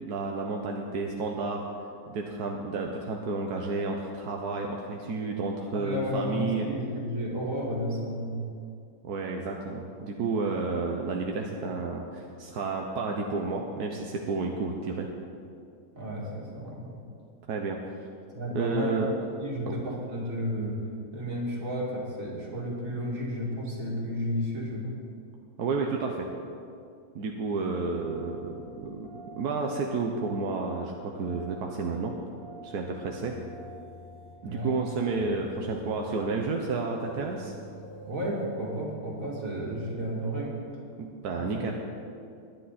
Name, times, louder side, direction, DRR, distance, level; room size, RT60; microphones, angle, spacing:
voice 1, 0.0-1.6 2.1-6.7 9.0-15.1 17.5-17.8 18.5-19.1 19.7-19.8 25.6-26.3 27.1-32.1 32.6-33.3 34.4-37.5 41.0-41.7, right 4 dB, 90° right, 1 dB, 1.5 m, -31 dB
voice 2, 5.7-8.4 15.9-17.0 18.3-19.0 19.4-20.8 21.1-24.9 34.4-34.7 38.1-40.5, equal, 60° right, -3 dB, 3.0 m, -32 dB
sound 1, 27.9-38.3, right 2 dB, 70° left, 2.8 m, -49 dB
21.0 x 10.0 x 4.2 m, 2.4 s
omnidirectional pair, 1.6 m